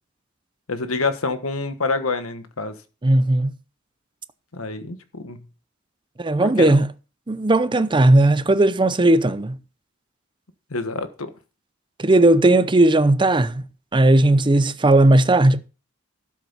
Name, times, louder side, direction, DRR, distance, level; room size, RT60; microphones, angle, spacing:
voice 1, 0.7-2.7 4.5-5.4 6.4-6.8 10.7-11.3, left 3 dB, 85° left, 1.4 m, -27 dB
voice 2, 3.0-3.5 6.2-6.9 7.3-9.6 12.0-13.6 13.9-15.6, right 2 dB, 25° right, 0.6 m, -16 dB
12.5 x 7.4 x 4.1 m
head